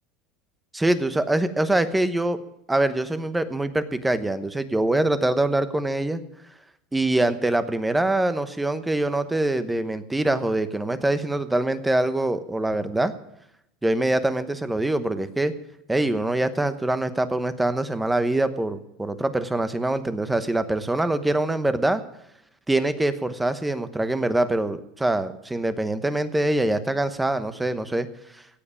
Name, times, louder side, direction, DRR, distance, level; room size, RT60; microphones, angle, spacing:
voice 1, 0.7-2.4 2.7-6.2 6.9-13.1 13.8-15.5 15.9-22.0 22.7-28.1, right 2 dB, 5° right, 12 dB, 1.0 m, -24 dB
16.5 x 8.0 x 8.6 m, 0.80 s
supercardioid pair, 155°, 0 cm